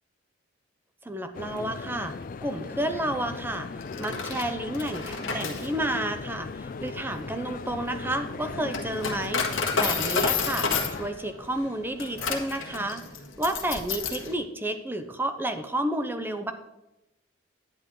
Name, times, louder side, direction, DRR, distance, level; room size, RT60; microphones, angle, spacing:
voice 1, 1.0-2.1 2.4-13.0 13.4-16.5, right 1 dB, 10° right, 8 dB, 0.6 m, -31 dB
sound 1, 1.3-11.1, left 4 dB, 45° left, 0.4 m, -38 dB
Coin (dropping), 3.8-14.3, left 5 dB, 85° left, 1.5 m, -31 dB
10.5 x 9.5 x 3.7 m, 0.95 s
head